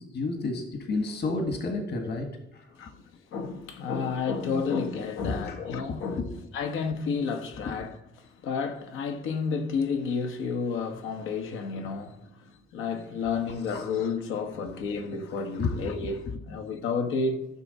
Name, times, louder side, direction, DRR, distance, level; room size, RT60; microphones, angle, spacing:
voice 1, 0.1-2.3 2.5-2.6 5.2-5.6 6.2-6.3 7.6-7.7 15.6-15.9, left 3 dB, 60° left, 1.6 m, -30 dB
voice 2, 3.3-6.2 6.5-8.0 8.4-12.1 12.7-17.5, left 5 dB, 90° left, 1.2 m, -30 dB
14.0 x 6.2 x 4.1 m
cardioid pair, 90°, 20 cm